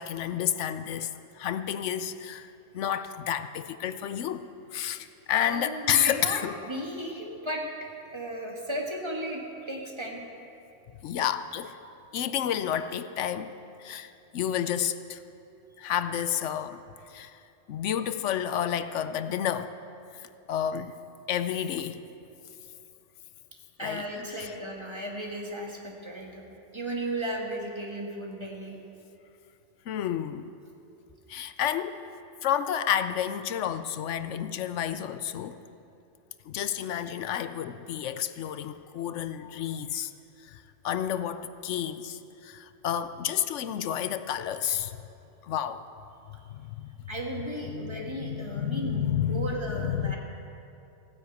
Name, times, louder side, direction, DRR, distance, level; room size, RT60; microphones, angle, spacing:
voice 1, 0.0-4.4 4.7-6.6 11.0-11.8 12.1-13.5 13.8-15.2 15.8-17.4 17.7-19.8 20.1-21.0 21.3-22.0 23.8-24.0 24.4-24.5 29.9-30.5 31.3-32.0 32.4-35.6 36.5-40.1 40.4-45.0 45.4-45.8 46.5-46.9 47.7-50.2, left 9 dB, 85° left, 1.0 m, -30 dB
voice 2, 5.4-6.4 6.7-10.2 23.8-26.5 26.7-28.8 47.1-49.0 49.3-50.2, right 1 dB, 25° right, 1.9 m, -35 dB
15.5 x 10.0 x 8.0 m
omnidirectional pair, 1.2 m